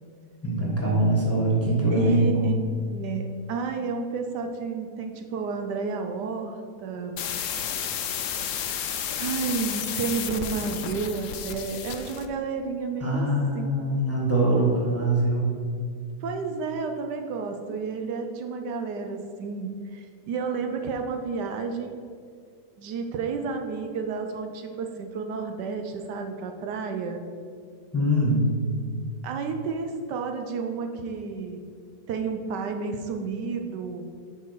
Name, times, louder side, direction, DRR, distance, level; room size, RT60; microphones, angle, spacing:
voice 1, 0.4-2.3 13.0-15.5 27.9-28.5, right 1 dB, 10° left, -5 dB, 1.3 m, -23 dB
voice 2, 1.9-7.2 9.2-13.3 13.5-13.8 16.2-22.0 22.8-27.2 29.2-31.6 32.1-34.1, right 5 dB, 75° right, 5 dB, 1.2 m, -31 dB
sound 1, 7.2-12.3, left 8 dB, 70° left, 0.7 m, -32 dB
7.1 x 4.6 x 5.9 m, 2.2 s
omnidirectional pair, 1.9 m